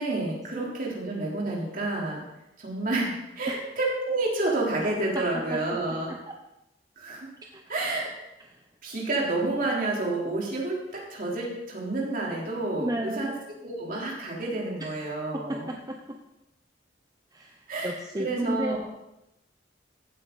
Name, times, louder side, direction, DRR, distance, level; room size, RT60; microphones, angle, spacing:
voice 1, 0.0-2.2 2.6-6.1 7.0-7.3 7.7-8.2 8.8-13.3 13.6-15.7 17.7-18.8, right 2 dB, 50° right, -3 dB, 3.5 m, -29 dB
voice 2, 12.8-13.4 15.9-16.0 17.3-18.8, right 1 dB, 20° right, 2 dB, 0.8 m, -32 dB
15.0 x 9.0 x 4.0 m, 0.90 s
head